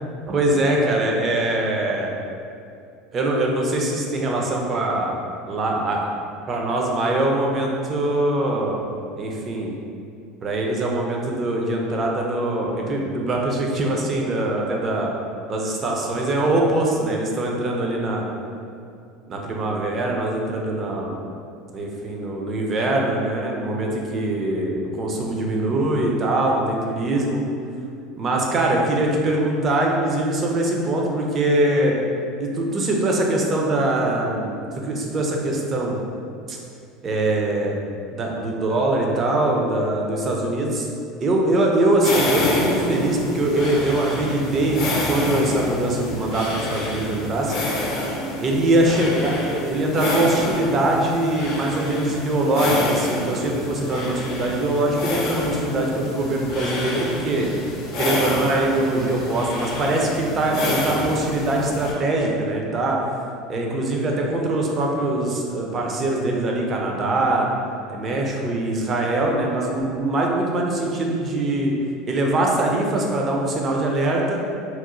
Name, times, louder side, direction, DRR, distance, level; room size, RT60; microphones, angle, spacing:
voice 1, 0.3-2.1 3.1-5.2 5.5-6.1 6.5-8.9 9.2-9.7 10.4-15.1 15.5-18.3 19.3-21.2 21.7-27.4 28.2-32.0 32.4-36.0 36.5-36.6 37.0-37.8 38.1-40.9 41.2-47.5 48.4-57.5 58.0-63.0 63.5-67.5 67.9-71.7 72.1-74.4, right 2 dB, 40° right, 0 dB, 0.4 m, -22 dB
sound 1, 42.0-61.9, left 2 dB, 60° left, 0.5 m, -28 dB
2.8 x 2.0 x 2.5 m, 2.4 s
hypercardioid pair, 90°, 0 cm